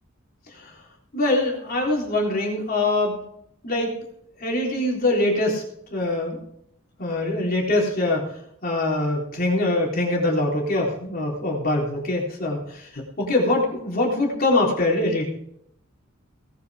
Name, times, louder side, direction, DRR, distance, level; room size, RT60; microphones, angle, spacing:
voice 1, 1.1-3.2 3.6-4.0 4.4-5.6 5.9-6.4 7.0-8.3 8.6-15.3, left 2 dB, 45° left, -2 dB, 3.8 m, -23 dB
18.5 x 10.5 x 3.6 m, 0.73 s
head